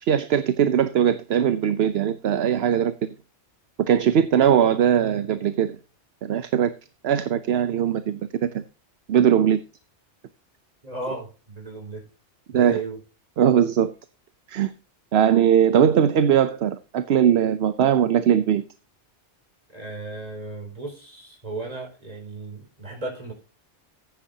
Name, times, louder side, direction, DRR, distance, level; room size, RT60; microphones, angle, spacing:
voice 1, 0.0-2.9 3.9-5.8 6.2-6.7 7.0-8.6 9.1-9.6 12.5-12.8 13.4-13.9 14.5-14.7 15.1-18.6, right 9 dB, 65° right, 0.9 m, -20 dB
voice 2, 10.8-12.1 12.5-13.0 19.7-23.3, right 3 dB, 35° right, 5.1 m, -35 dB
14.5 x 9.3 x 2.8 m
omnidirectional pair, 1.2 m